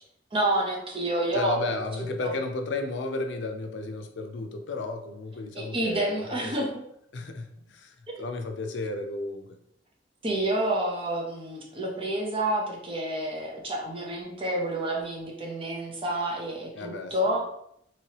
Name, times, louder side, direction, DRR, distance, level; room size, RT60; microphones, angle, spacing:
voice 1, 0.3-1.5 2.2-2.3 5.5-6.8 8.1-8.2 10.2-17.4, right 1 dB, 30° right, -1 dB, 0.8 m, -29 dB
voice 2, 1.3-6.6 7.1-9.5 16.7-17.4, left 2 dB, 75° left, 6 dB, 0.5 m, -33 dB
3.1 x 3.0 x 2.9 m, 0.73 s
head